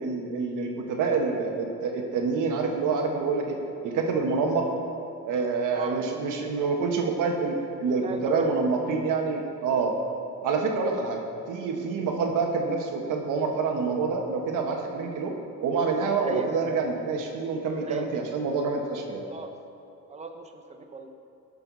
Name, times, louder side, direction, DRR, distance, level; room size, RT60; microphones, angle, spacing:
voice 1, 0.0-3.6 3.8-4.7 5.2-9.9 10.4-11.2 11.5-15.3 15.6-19.2, right 4 dB, 85° right, 2 dB, 1.5 m, -27 dB
voice 2, 5.7-6.3 8.0-8.5 16.1-16.5 17.8-18.0 19.2-19.5 20.1-21.1, right 4 dB, 20° right, 4 dB, 0.9 m, -38 dB
17.0 x 6.8 x 4.1 m, 2.6 s
cardioid pair, 95°, 30 cm